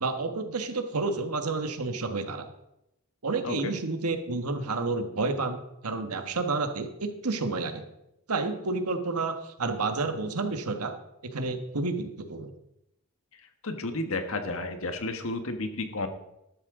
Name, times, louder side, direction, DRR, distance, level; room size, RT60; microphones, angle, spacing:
voice 1, 0.0-2.5 3.2-7.8 8.3-10.9 11.2-12.5, right 3 dB, 85° right, 7 dB, 1.4 m, -30 dB
voice 2, 3.4-3.7 13.6-16.1, left 2 dB, 65° left, 7 dB, 1.4 m, -32 dB
13.0 x 12.0 x 3.8 m, 0.85 s
head